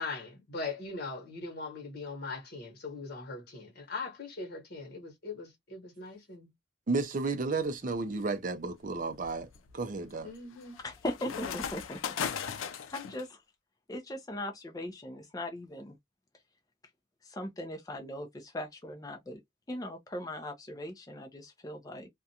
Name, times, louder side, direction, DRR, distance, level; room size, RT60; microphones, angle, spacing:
voice 1, 0.0-6.5 10.2-10.8, left 3 dB, 50° left, 1.2 m, -40 dB
voice 2, 6.9-9.5 9.7-10.3, right 3 dB, 40° right, 0.4 m, -32 dB
sound 1, 7.7-8.0 8.6-13.2, left 7 dB, 85° left, 0.4 m, -38 dB
voice 3, 10.8-12.0 12.9-13.4 13.9-16.0 17.2-19.4 19.7-22.1, left 1 dB, 20° left, 0.4 m, -39 dB
2.4 x 2.2 x 2.7 m
head